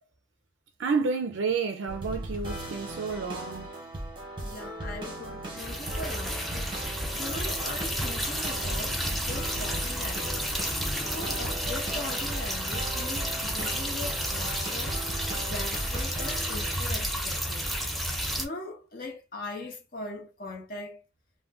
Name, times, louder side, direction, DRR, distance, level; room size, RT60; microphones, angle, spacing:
voice 1, 0.8-3.7, right 5 dB, 75° right, 0.4 m, -30 dB
sound 1, 1.9-16.8, right 1 dB, 25° right, 0.8 m, -38 dB
voice 2, 4.4-6.7 7.2-10.5 11.0-15.0 15.4-17.7 18.4-21.0, left 2 dB, 45° left, 0.9 m, -40 dB
sound 2, 5.6-18.5, equal, ahead, 0.4 m, -31 dB
2.4 x 2.2 x 3.4 m
head